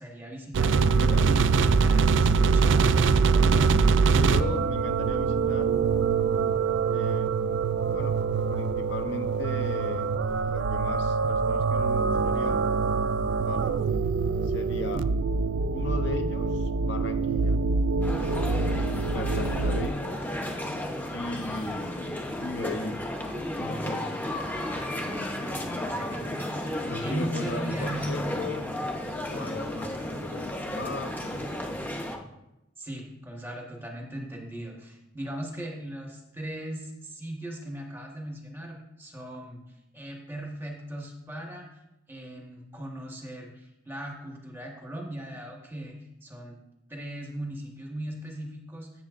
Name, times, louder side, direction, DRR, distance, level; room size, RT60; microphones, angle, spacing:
voice 1, 0.0-3.8 25.3-28.3 29.4-30.4 32.8-41.8 42.1-46.6 46.9-49.0, right 1 dB, 10° right, 0 dB, 1.3 m, -39 dB
sound 1, 0.5-19.9, right 4 dB, 70° right, 0.3 m, -24 dB
voice 2, 0.8-1.3 4.1-5.8 6.9-8.2 8.5-10.1 10.4-12.6 13.4-13.8 14.4-15.1 15.7-17.6 19.1-20.3 21.1-23.1 23.6-24.2 26.9-28.7 29.3-31.5, left 3 dB, 60° left, 7 dB, 0.7 m, -37 dB
sound 2, 18.0-32.2, left 1 dB, 10° left, 0.7 m, -33 dB
14.5 x 7.0 x 2.5 m, 0.91 s
head